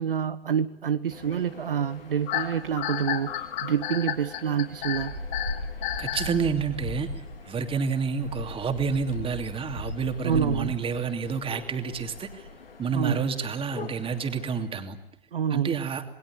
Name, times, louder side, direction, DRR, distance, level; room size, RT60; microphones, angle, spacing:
voice 1, 0.0-5.1 10.2-10.7 12.9-13.2 15.3-15.8, right 8 dB, 65° right, 11 dB, 1.2 m, -27 dB
sound 1, 1.1-14.7, left 2 dB, 75° left, 4.7 m, -39 dB
sound 2, 2.3-6.4, left 12 dB, 40° left, 4.3 m, -31 dB
voice 2, 6.0-7.1 7.5-12.5 12.8-15.0 15.5-16.0, right 6 dB, 20° right, 7 dB, 2.9 m, -29 dB
28.0 x 21.0 x 9.8 m, 0.71 s
figure-of-eight pair, 95°, 29 cm